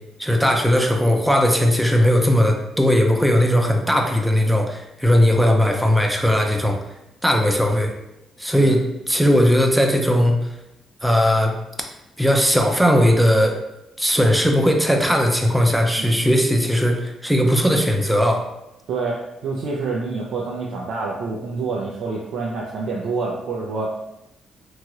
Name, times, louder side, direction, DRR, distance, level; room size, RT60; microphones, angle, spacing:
voice 1, 0.2-6.8 7.2-7.9 8.4-8.8 9.1-10.3 11.0-11.5 12.2-13.6 14.0-18.4, equal, 5° right, 2 dB, 0.5 m, -18 dB
voice 2, 18.9-23.9, right 3 dB, 70° right, -3 dB, 0.4 m, -27 dB
3.0 x 2.9 x 2.4 m, 0.90 s
cardioid pair, 90°, 0 cm